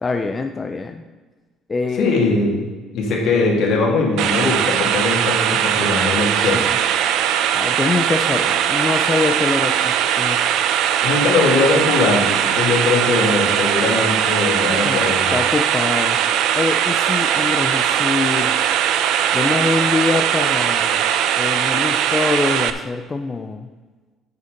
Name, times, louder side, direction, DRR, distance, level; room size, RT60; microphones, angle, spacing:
voice 1, 0.0-1.0 1.7-2.1 6.4-6.8 7.5-10.5 14.5-15.0 15.3-16.2 16.5-18.6 19.3-21.0 21.4-23.7, left 3 dB, 25° left, 6 dB, 0.5 m, -24 dB
voice 2, 2.0-2.6 2.9-6.6 11.0-15.4, left 3 dB, 70° left, -1 dB, 2.5 m, -20 dB
sound 1, 4.2-22.7, right 10 dB, 75° right, 0.6 m, -19 dB
8.6 x 6.8 x 5.1 m, 1.3 s
cardioid pair, 115°, 0 cm